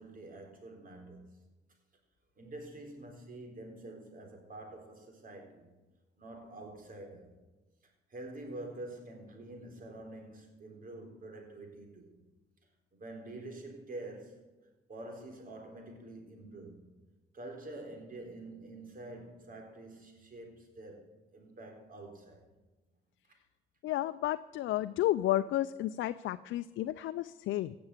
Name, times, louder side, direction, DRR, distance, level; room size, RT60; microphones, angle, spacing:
voice 1, 0.0-1.4 2.4-5.7 6.2-7.3 8.1-12.1 12.9-14.5 14.9-16.9 17.3-21.1 21.3-22.5, right 2 dB, 45° right, 4.0 m, -47 dB
voice 2, 23.8-27.7, left 14 dB, 80° left, 0.5 m, -32 dB
16.5 x 6.9 x 8.2 m
cardioid pair, 90°, 20 cm